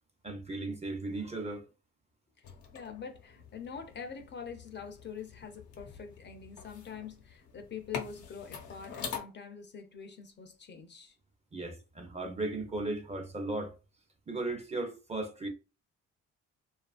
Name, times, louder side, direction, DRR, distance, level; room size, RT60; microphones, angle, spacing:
voice 1, 0.2-1.7 11.5-13.8 14.3-15.5, right 2 dB, 20° right, 0.6 m, -36 dB
sound 1, 2.4-9.2, left 6 dB, 85° left, 0.8 m, -45 dB
voice 2, 2.7-11.2, left 6 dB, 35° left, 0.5 m, -44 dB
2.8 x 2.4 x 2.4 m
cardioid pair, 90°, 30 cm